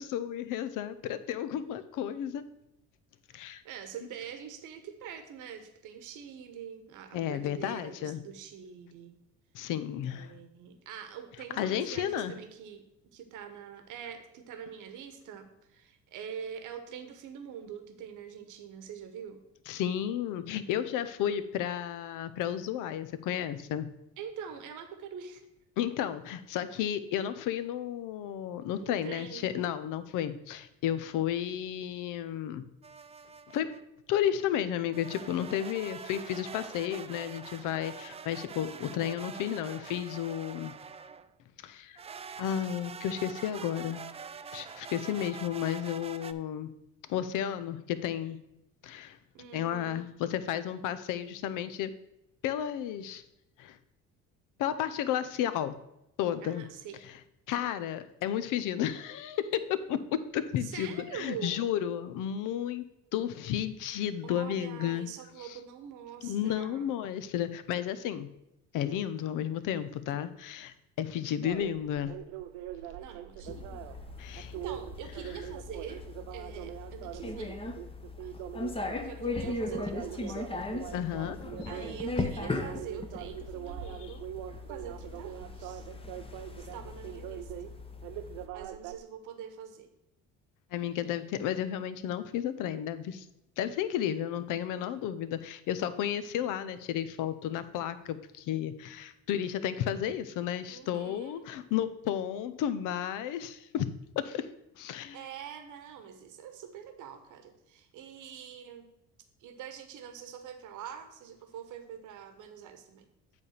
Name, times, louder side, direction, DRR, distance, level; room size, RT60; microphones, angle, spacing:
voice 1, 0.0-2.5 3.3-3.6 7.1-8.2 9.5-10.3 11.6-12.4 19.7-23.9 25.8-32.7 33.5-33.8 34.1-40.7 41.6-42.0 42.4-44.1 44.5-46.7 47.1-48.4 48.8-49.2 49.5-51.9 52.4-53.2 53.6-53.8 54.6-55.8 56.2-56.6 57.5-62.9 63.1-65.1 65.4-65.6 66.2-68.3 68.7-72.1 74.2-74.5 80.9-81.4 90.7-93.3 93.6-103.9 104.2-104.5 104.8-105.2, left 10 dB, 70° left, 13 dB, 0.7 m, -32 dB
voice 2, 3.3-9.1 10.0-19.4 24.2-25.4 28.8-29.5 49.3-50.0 56.4-57.0 60.6-61.6 64.2-66.8 73.0-73.8 74.5-76.0 76.3-77.6 78.2-78.4 79.0-80.6 81.7-84.3 84.7-85.9 86.6-87.8 88.5-89.9 100.7-101.4 105.1-108.9 109.4-113.1, right 8 dB, 65° right, 8 dB, 1.1 m, -45 dB
sound 1, 32.8-33.8 34.9-41.3 42.0-46.3, right 6 dB, 20° right, 0.3 m, -45 dB
sound 2, 71.4-89.0, right 12 dB, 85° right, 0.5 m, -43 dB
sound 3, 73.4-88.5, left 2 dB, 15° left, 0.8 m, -38 dB
8.4 x 3.4 x 6.5 m, 0.85 s
supercardioid pair, 85°, 33 cm